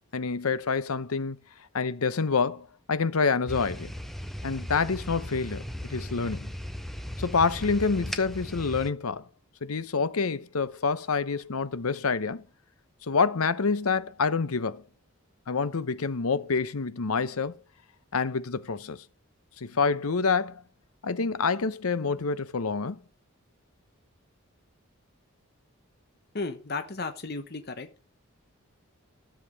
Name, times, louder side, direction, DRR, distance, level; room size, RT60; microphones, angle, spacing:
voice 1, 0.1-1.4 1.7-3.9 4.4-6.5 7.2-9.2 9.6-12.4 13.1-14.8 15.5-17.5 18.1-19.0 19.6-20.6 21.0-23.0, left 4 dB, 85° left, 0.8 m, -27 dB
sound 1, 3.5-8.9, equal, ahead, 0.7 m, -37 dB
voice 2, 26.3-27.9, left 3 dB, 45° left, 1.1 m, -34 dB
13.0 x 7.4 x 5.2 m
head